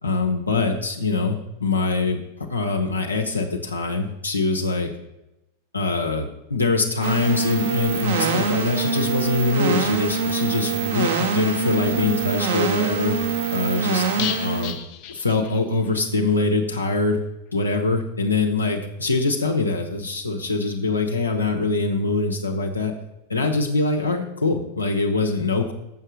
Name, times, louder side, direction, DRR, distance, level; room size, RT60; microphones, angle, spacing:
voice 1, 0.0-2.2 2.5-4.9 5.7-13.2 13.5-14.7 15.1-17.2 17.5-22.9 23.3-25.7, left 3 dB, 80° left, 2 dB, 0.9 m, -23 dB
sound 1, 7.0-14.7, right 5 dB, 60° right, 1.5 m, -24 dB
sound 2, 14.2-16.0 16.2-16.3 16.7-16.8, left 10 dB, 45° left, 0.7 m, -33 dB
7.3 x 6.6 x 6.3 m, 0.90 s
figure-of-eight pair, 90°, 0 cm